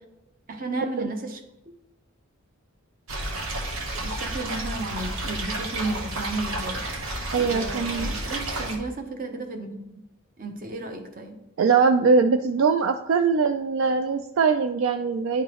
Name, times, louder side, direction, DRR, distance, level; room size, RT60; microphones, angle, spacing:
voice 1, 0.5-1.4 4.0-10.0 10.4-11.4, right 2 dB, 45° right, 0.8 m, -33 dB
sound 1, 3.1-8.8, right 2 dB, 85° right, 1.1 m, -31 dB
voice 2, 7.3-8.1 11.6-15.4, right 5 dB, 70° right, 0.4 m, -21 dB
11.0 x 3.7 x 3.0 m
head